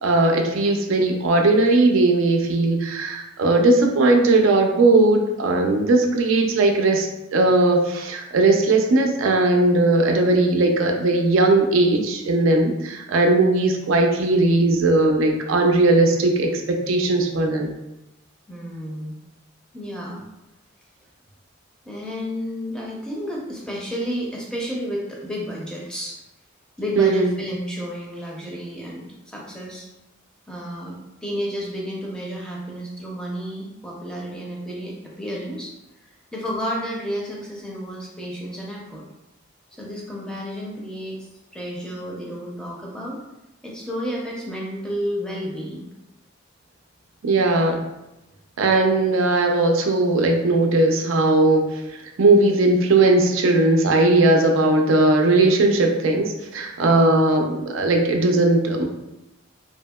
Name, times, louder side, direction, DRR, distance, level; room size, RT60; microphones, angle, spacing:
voice 1, 0.0-17.7 27.0-27.3 47.2-47.8 48.6-51.8 52.2-58.8, right 2 dB, 80° right, 3 dB, 0.4 m, -18 dB
voice 2, 18.5-19.2 19.7-20.2 21.9-26.2 26.8-29.9 30.5-35.7 36.3-39.0 39.7-41.3 41.5-43.2 43.6-45.9 56.8-57.2, equal, 5° left, -3 dB, 0.4 m, -31 dB
2.7 x 2.7 x 2.2 m, 0.94 s
head